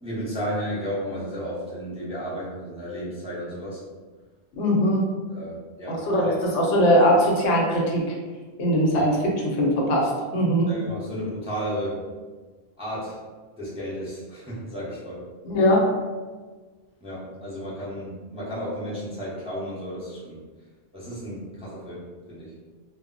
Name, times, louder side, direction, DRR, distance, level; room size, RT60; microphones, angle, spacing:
voice 1, 0.0-3.8 5.3-6.1 9.0-9.1 10.7-12.0 12.8-13.2 13.6-15.2 17.0-20.4 20.9-22.0 22.3-22.5, equal, 5° right, -8 dB, 0.5 m, -33 dB
voice 2, 4.5-5.0 5.9-8.0 8.6-9.2 9.6-10.7 15.4-15.9, equal, 85° left, -2 dB, 1.0 m, -20 dB
2.1 x 2.0 x 3.7 m, 1.4 s
omnidirectional pair, 1.2 m